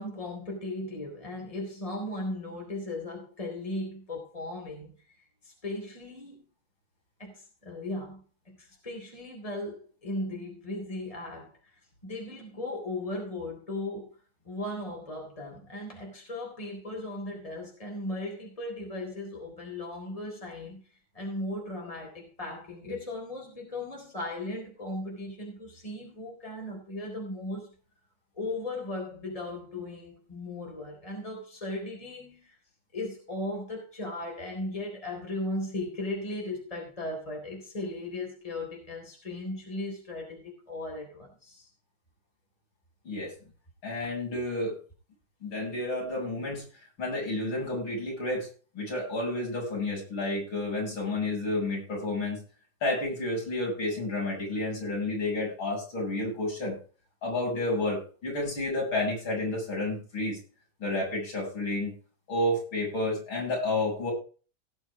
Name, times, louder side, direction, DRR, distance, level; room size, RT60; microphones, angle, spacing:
voice 1, 0.0-5.2 5.4-6.4 7.2-11.7 12.0-14.1 14.4-20.8 21.1-27.7 28.3-32.6 32.9-41.7, left 1 dB, 15° left, 0 dB, 3.8 m, -37 dB
voice 2, 43.8-44.8 45.4-46.6 47.0-48.5 48.7-52.4 52.8-56.8 57.2-60.4 60.8-61.9 62.3-64.1, left 2 dB, 70° left, -4 dB, 8.2 m, -30 dB
17.5 x 6.3 x 4.9 m, 0.38 s
omnidirectional pair, 2.3 m